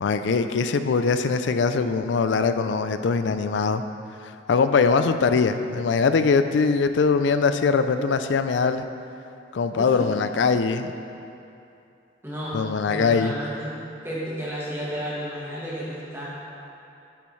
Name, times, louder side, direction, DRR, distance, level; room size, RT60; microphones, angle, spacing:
voice 1, 0.0-3.8 4.5-8.9 9.5-10.9 12.5-13.3, left 5 dB, 75° left, 10 dB, 0.4 m, -22 dB
voice 2, 9.8-10.1 12.2-12.6 12.9-13.8 14.0-16.3, equal, 15° right, -7 dB, 1.2 m, -32 dB
8.9 x 8.4 x 3.2 m, 2.7 s
head